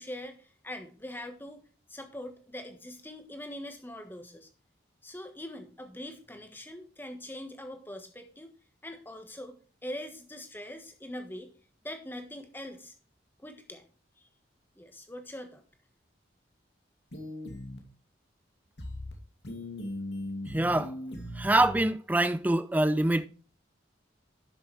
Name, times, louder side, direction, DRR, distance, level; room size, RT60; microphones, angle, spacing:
voice 1, 0.0-1.6 1.9-4.5 5.0-8.5 8.8-9.6 9.8-11.5 11.8-12.9 13.4-13.8 14.2-14.3 14.8-15.6, left 1 dB, 10° left, 1.3 m, -42 dB
sound 1, 17.1-17.8 18.8-19.1 19.4-21.8, left 1 dB, 70° left, 2.4 m, -38 dB
voice 2, 20.5-20.9 21.4-23.3, right 1 dB, 10° right, 0.3 m, -25 dB
11.5 x 6.8 x 3.2 m
head